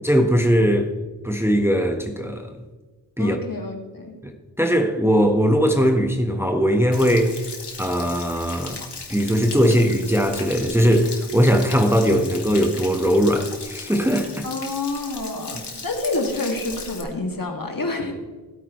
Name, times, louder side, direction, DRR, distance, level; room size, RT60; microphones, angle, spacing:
voice 1, 0.0-0.9 1.2-2.5 3.2-3.4 4.2-7.4 7.8-8.8 9.1-14.4, equal, 5° right, 1.2 m, -20 dB
voice 2, 3.2-4.1 14.4-18.2, left 2 dB, 50° left, 2.2 m, -28 dB
Stream / Splash splatter / Trickle dribble, 6.9-17.0, left 4 dB, 65° left, 2.0 m, -37 dB
16.0 x 8.7 x 3.1 m
cardioid pair, 40°, 44 cm